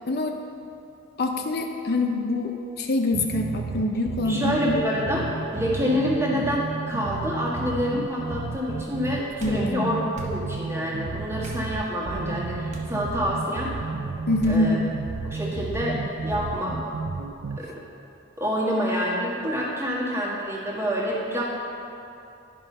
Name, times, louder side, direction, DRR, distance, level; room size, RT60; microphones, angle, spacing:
voice 1, 0.1-0.4 1.2-4.8 9.4-10.0 14.3-14.9, left 2 dB, 50° left, 3 dB, 0.5 m, -25 dB
sound 1, 3.1-17.6, right 4 dB, 70° right, 0.5 m, -32 dB
voice 2, 4.2-13.7 14.5-14.7 15.3-16.0 16.2-16.8 17.6-17.7 18.4-21.4, equal, 15° right, -5 dB, 1.6 m, -27 dB
sound 2, 9.4-9.6 10.1-10.4 11.4-11.6 12.7-13.0 14.4-14.6, right 1 dB, 35° right, 1.1 m, -39 dB
11.0 x 5.4 x 5.4 m, 2.8 s
head